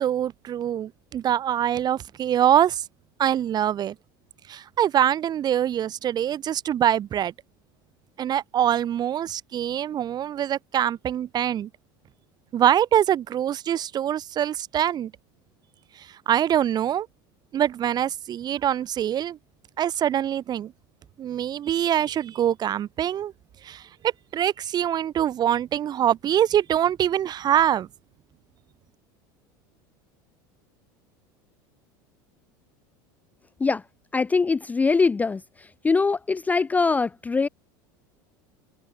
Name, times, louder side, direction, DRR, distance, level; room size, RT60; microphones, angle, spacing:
voice 1, 0.0-2.8 3.2-4.0 4.5-7.3 8.2-11.7 12.5-15.1 16.0-17.1 17.5-19.4 19.8-20.7 21.2-23.3 23.6-27.9, right 10 dB, 40° right, 1.9 m, -24 dB
voice 2, 34.1-35.4 35.8-37.5, left 4 dB, 15° left, 0.4 m, -22 dB
supercardioid pair, 105°, 11 cm